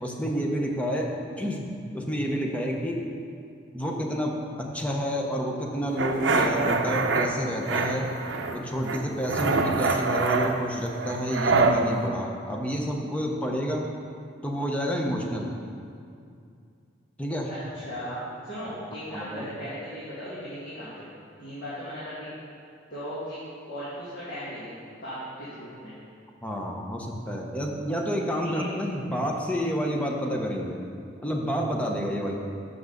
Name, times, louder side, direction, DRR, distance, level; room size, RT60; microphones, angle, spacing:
voice 1, 0.0-3.0 3.7-8.1 8.5-13.9 14.4-15.5 17.2-17.5 18.8-19.5 26.4-30.8 31.2-32.4, equal, 5° left, 0 dB, 0.7 m, -29 dB
sound 1, 6.0-7.3 7.7-8.6 8.8-11.8, right 4 dB, 70° right, 0.6 m, -25 dB
voice 2, 17.5-21.1 21.4-22.3 22.9-23.4 23.6-25.9 28.4-28.7, equal, 55° left, -12 dB, 2.0 m, -37 dB
6.2 x 5.9 x 6.6 m, 2.4 s
head